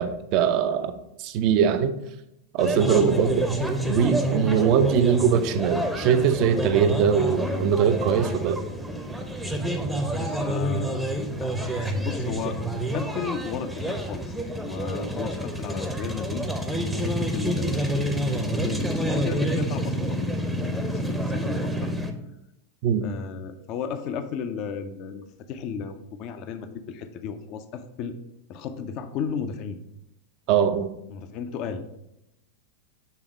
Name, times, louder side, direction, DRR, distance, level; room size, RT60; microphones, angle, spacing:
voice 1, 0.0-1.9 2.5-3.4 3.8-8.6 22.8-23.1 30.5-30.9, right 8 dB, 40° right, 10 dB, 0.5 m, -22 dB
sound 1, 2.6-22.1, right 1 dB, 5° right, 0.7 m, -28 dB
voice 2, 2.9-3.2 6.8-7.0 10.1-11.1 11.4-12.6 12.9-14.3 14.6-16.5 17.0-20.4 20.8-21.9 23.0-28.2 28.5-29.8 31.1-31.8, left 6 dB, 40° left, 9 dB, 0.5 m, -34 dB
6.8 x 3.5 x 4.6 m, 0.84 s
figure-of-eight pair, 90°, 0 cm